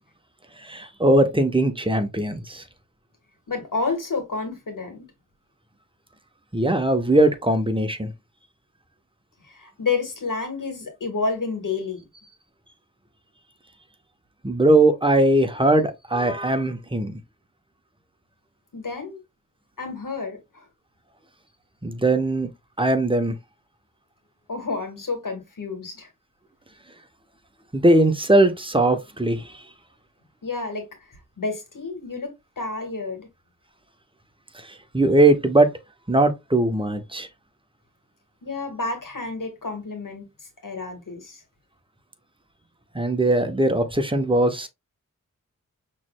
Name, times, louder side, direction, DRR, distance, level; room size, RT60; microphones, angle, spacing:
voice 1, 0.6-2.6 6.5-8.1 14.4-17.1 21.8-22.5 22.8-23.3 27.7-29.5 34.9-35.7 36.1-37.3 42.9-44.7, right 1 dB, 15° right, 0.9 m, -20 dB
voice 2, 3.5-5.0 9.5-12.0 18.7-19.2 19.8-20.6 24.5-26.1 30.4-33.3 38.4-40.2 40.6-41.4, left 4 dB, 85° left, 1.6 m, -30 dB
6.0 x 3.2 x 2.2 m
wide cardioid pair, 50°, 31 cm